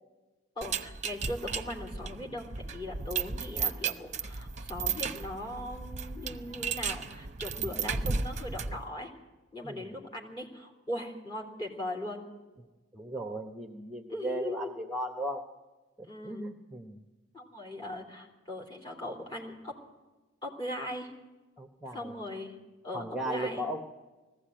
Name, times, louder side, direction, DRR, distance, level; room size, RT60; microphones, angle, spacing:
voice 1, 0.5-9.1 9.5-12.2 14.1-14.7 16.0-16.4 17.3-19.7 20.4-21.1 21.9-22.6 22.8-23.6, left 1 dB, 25° left, -1 dB, 3.3 m, -39 dB
sound 1, 0.6-8.9, right 5 dB, 35° right, 0.8 m, -35 dB
voice 2, 9.6-9.9 12.9-15.5 16.0-17.0 21.6-22.1 22.9-23.8, right 1 dB, 5° right, 4 dB, 0.9 m, -36 dB
20.0 x 15.0 x 8.8 m, 1.2 s
head